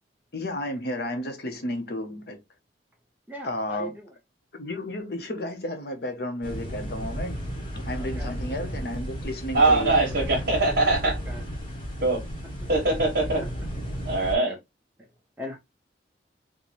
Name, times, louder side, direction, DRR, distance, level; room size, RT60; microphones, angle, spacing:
voice 1, 0.3-2.4 3.4-3.9 4.6-7.4 7.7-10.0, left 1 dB, 60° left, 0.8 m, -32 dB
voice 2, 3.3-4.1 8.0-8.3 9.6-9.9 11.3-11.4 13.4-13.5 13.9-14.6 15.4-15.6, equal, 10° right, 0.8 m, -40 dB
sound 1, 6.4-14.3, equal, 30° left, 1.0 m, -33 dB
voice 3, 9.5-11.2 12.0-12.2 12.7-13.4 14.0-14.5, right 2 dB, 60° right, 1.1 m, -22 dB
4.1 x 2.2 x 3.0 m
head